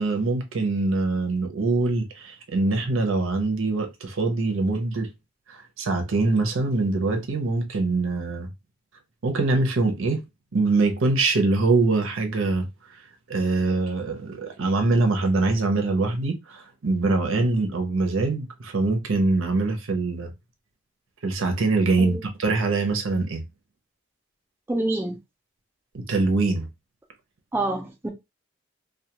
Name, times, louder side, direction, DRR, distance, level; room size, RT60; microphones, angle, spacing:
voice 1, 0.0-5.1 5.5-8.5 9.2-10.2 10.5-13.0 13.3-20.3 21.2-23.4 25.9-26.7, right 3 dB, 85° right, 0.6 m, -23 dB
voice 2, 24.7-25.2 27.5-28.1, right 2 dB, 10° right, 0.3 m, -27 dB
2.3 x 2.3 x 2.8 m
head